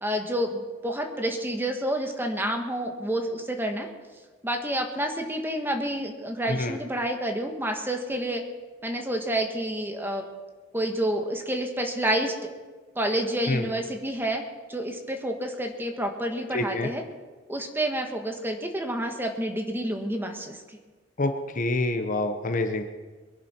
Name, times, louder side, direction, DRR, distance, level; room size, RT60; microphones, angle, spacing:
voice 1, 0.0-3.9 4.4-8.4 8.8-10.3 10.7-12.5 12.9-14.4 14.7-17.0 17.5-20.6, right 1 dB, 10° right, 3 dB, 1.5 m, -29 dB
voice 2, 6.5-6.8 13.5-13.7 16.5-16.9 21.2-22.8, left 2 dB, 45° left, 7 dB, 0.9 m, -27 dB
22.5 x 11.0 x 4.4 m, 1.3 s
head